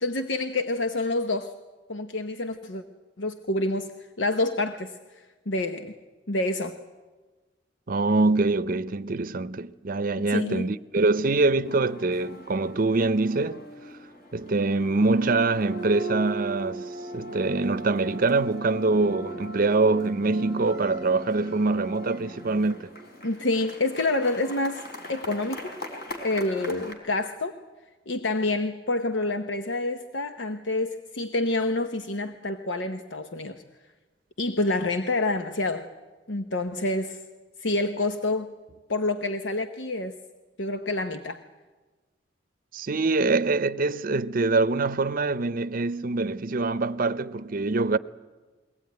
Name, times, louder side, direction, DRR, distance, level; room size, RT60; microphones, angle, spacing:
voice 1, 0.0-1.5 1.9-2.8 3.2-3.9 4.2-4.9 5.5-5.9 6.3-6.7 10.3-10.7 23.2-25.7 26.2-27.5 28.1-33.6 34.4-35.9 36.3-37.2 37.6-38.5 38.9-40.2 40.6-41.4, left 2 dB, 90° left, 1.0 m, -27 dB
voice 2, 7.9-13.6 14.3-22.8 42.7-48.0, right 3 dB, 50° right, 0.6 m, -24 dB
sound 1, 11.6-26.9, right 1 dB, 55° left, 3.8 m, -39 dB
22.5 x 18.0 x 9.5 m
head